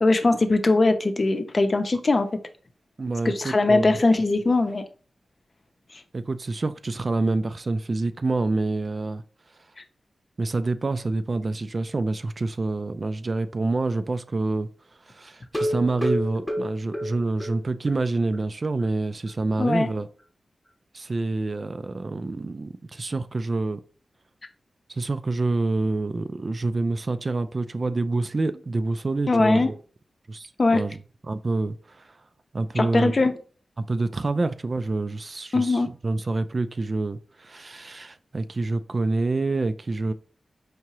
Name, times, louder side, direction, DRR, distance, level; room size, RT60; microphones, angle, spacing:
voice 1, 0.0-2.3 3.2-4.8 9.8-9.9 19.6-19.9 29.3-29.7 30.6-30.8 32.8-33.3 35.5-35.9, left 2 dB, 50° left, 0.6 m, -21 dB
voice 2, 3.0-4.0 6.1-9.2 10.4-14.7 15.1-20.1 20.9-23.8 24.9-29.8 30.3-31.0 31.3-32.1 32.5-33.1 33.8-40.1, right 3 dB, 45° right, 0.3 m, -27 dB
sound 1, 15.4-18.0 18.3-18.4 18.8-18.9 19.3-19.4, equal, 5° left, 1.0 m, -29 dB
4.6 x 2.8 x 3.0 m
cardioid pair, 60°, 0 cm